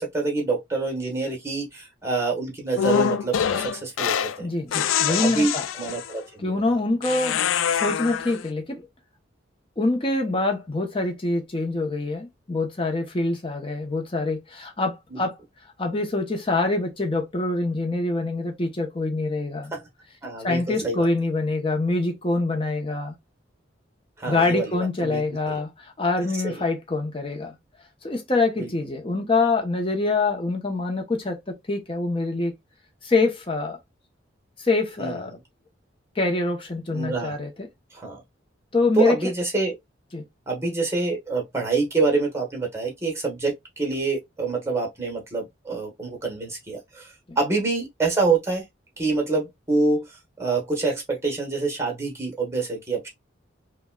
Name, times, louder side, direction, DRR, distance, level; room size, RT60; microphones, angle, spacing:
voice 1, 0.0-4.5 5.1-6.6 15.1-15.2 19.7-19.9 20.2-21.0 24.2-25.6 26.4-26.6 28.6-28.7 35.0-35.2 36.9-37.4 37.9-38.2 38.9-39.7 40.5-48.6 49.0-53.1, right 3 dB, 15° right, 1.2 m, -26 dB
sound 1, 2.8-4.4 4.7-6.2 7.0-8.4, left 8 dB, 90° left, 0.4 m, -25 dB
voice 2, 4.4-5.7 6.4-7.4 7.7-8.9 9.8-15.3 15.8-19.7 20.4-23.1 24.3-27.5 28.0-32.5 33.0-33.8 34.6-35.4 36.2-37.7 38.7-39.2 40.1-40.2 47.3-47.4, left 3 dB, 30° left, 0.8 m, -25 dB
5.1 x 2.3 x 2.3 m
head